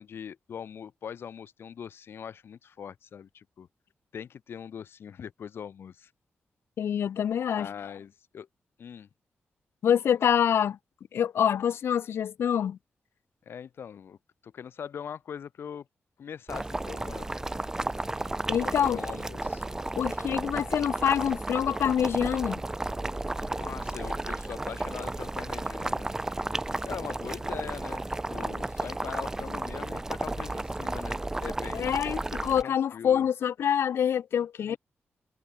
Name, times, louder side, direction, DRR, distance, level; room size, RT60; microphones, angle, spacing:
voice 1, 0.0-3.7 4.1-6.1 7.5-8.5 8.8-9.1 13.4-14.2 14.4-15.9 16.2-17.3 18.6-19.7 23.4-26.1 26.8-32.0 32.6-33.3 34.7-34.8, left 8 dB, 70° left, 4.8 m, -41 dB
voice 2, 6.8-7.7 9.8-10.8 11.1-12.8 18.5-19.0 19.9-22.6 31.7-34.8, left 9 dB, 90° left, 0.6 m, -26 dB
Boiling, 16.5-32.6, right 2 dB, 15° right, 0.7 m, -33 dB
wide cardioid pair, 170°, 4 cm